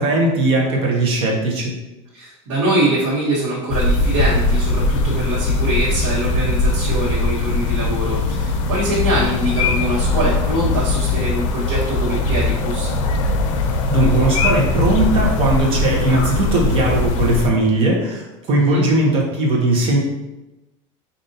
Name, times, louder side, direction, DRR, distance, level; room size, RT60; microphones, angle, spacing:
voice 1, 0.0-1.7 13.9-20.0, right 2 dB, 35° right, -2 dB, 0.9 m, -18 dB
voice 2, 2.1-12.9 18.5-18.8, right 1 dB, 80° right, -9 dB, 1.4 m, -23 dB
sound 1, 3.7-17.5, left 3 dB, 80° left, 0.5 m, -20 dB
5.0 x 2.6 x 2.7 m, 1.0 s
supercardioid pair, 160°, 16 cm